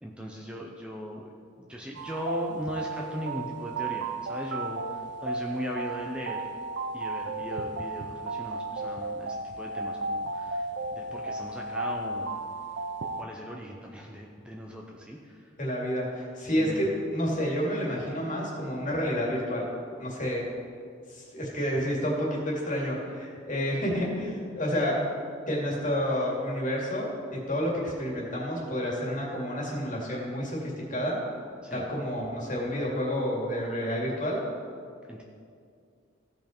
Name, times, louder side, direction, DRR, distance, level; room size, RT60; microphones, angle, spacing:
voice 1, 0.0-6.5 6.9-12.3 13.1-15.5 16.4-16.9 31.6-31.9 35.1-35.2, equal, 5° right, -1 dB, 0.6 m, -38 dB
sound 1, 1.9-13.2, right 2 dB, 60° right, 0.6 m, -34 dB
voice 2, 15.6-19.7 20.0-20.4 21.1-25.0 25.5-27.1 27.5-31.2 31.7-34.4, equal, 40° left, -3 dB, 2.4 m, -29 dB
15.5 x 5.3 x 4.4 m, 2.3 s
head